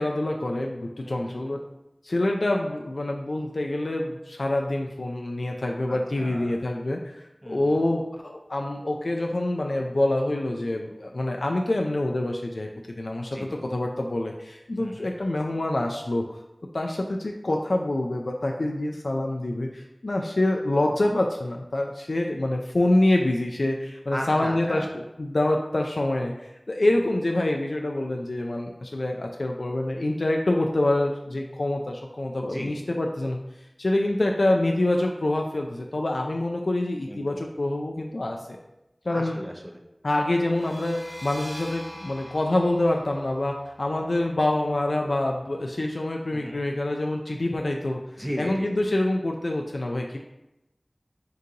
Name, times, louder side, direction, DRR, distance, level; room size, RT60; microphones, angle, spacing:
voice 1, 0.0-1.6 2.0-7.1 7.5-12.7 13.0-16.4 16.7-33.4 33.8-38.4 39.1-39.4 40.0-48.0 48.4-50.2, left 1 dB, 75° left, 1 dB, 0.3 m, -26 dB
voice 2, 1.0-1.5 5.9-6.6 7.4-7.8 13.2-13.5 14.8-15.1 24.1-24.9 32.5-32.7 37.1-37.4 39.1-39.8 46.3-46.6 48.2-48.8, equal, 5° right, 1 dB, 0.7 m, -36 dB
sound 1, 40.4-45.9, equal, 40° left, 1.4 m, -45 dB
3.8 x 3.7 x 2.8 m, 0.91 s
wide cardioid pair, 50°, 0 cm